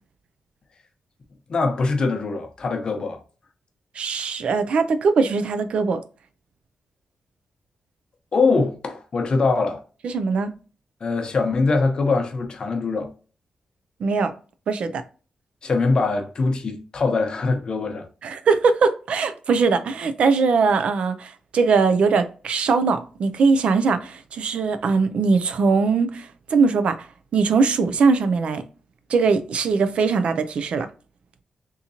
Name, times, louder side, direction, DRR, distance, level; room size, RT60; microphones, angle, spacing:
voice 1, 1.5-3.2 8.3-9.8 11.0-13.1 15.6-18.1, left 3 dB, 45° left, 0.8 m, -22 dB
voice 2, 4.0-6.0 10.0-10.5 14.0-14.3 14.7-15.0 18.2-27.1 27.3-28.6 29.1-30.9, right 4 dB, 65° right, 0.5 m, -21 dB
3.7 x 2.9 x 2.7 m
wide cardioid pair, 125°, 2 cm